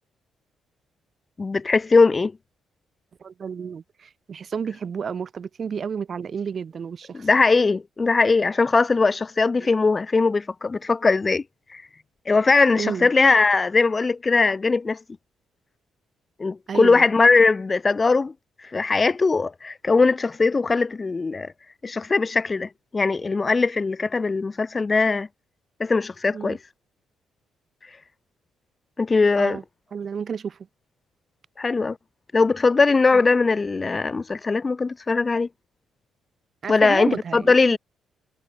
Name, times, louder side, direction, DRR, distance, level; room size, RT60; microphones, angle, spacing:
voice 1, 1.4-2.3 7.1-11.4 11.7-11.8 12.3-15.0 16.4-18.3 18.6-21.5 21.8-25.3 25.8-26.6 29.0-29.6 31.6-32.0 32.3-35.5 36.7-37.8, left 4 dB, 30° left, 0.6 m, -20 dB
voice 2, 3.2-7.3 12.8-13.1 16.7-17.0 26.3-26.6 29.3-29.6 29.9-30.6 36.6-37.8, right 6 dB, 50° right, 2.5 m, -31 dB
cardioid pair, 90°, 0 cm